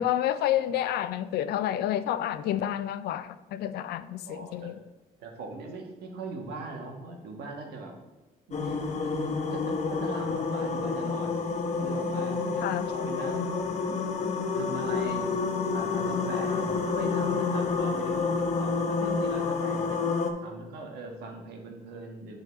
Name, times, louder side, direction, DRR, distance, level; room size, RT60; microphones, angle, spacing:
voice 1, 0.0-4.8 12.6-12.9, left 11 dB, 80° left, 0.4 m, -29 dB
voice 2, 4.2-4.7 5.2-7.9 8.5-11.4 11.7-15.3 15.6-18.3 18.6-20.0 20.4-22.4, right 3 dB, 85° right, 1.4 m, -40 dB
sound 1, 8.5-20.3, left 4 dB, 45° left, 0.8 m, -29 dB
9.0 x 4.0 x 4.0 m
cardioid pair, 105°, 16 cm